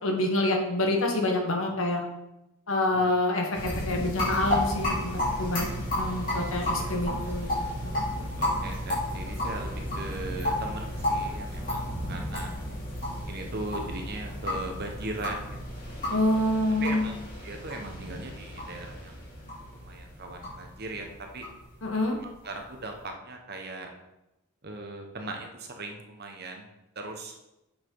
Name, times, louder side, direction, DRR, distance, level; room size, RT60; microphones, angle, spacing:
voice 1, 0.0-2.0 2.7-5.7 6.0-8.0 16.1-17.1 21.8-22.2, left 1 dB, 65° left, 2 dB, 1.4 m, -27 dB
sound 1, 3.5-22.8, left 1 dB, 40° left, 3.0 m, -32 dB
voice 2, 6.6-7.6 8.4-12.5 13.3-15.4 16.8-19.1 19.7-21.4 22.2-23.9 24.6-26.7 26.9-27.4, right 2 dB, 45° right, 3 dB, 1.1 m, -39 dB
7.4 x 5.9 x 4.7 m, 0.93 s
head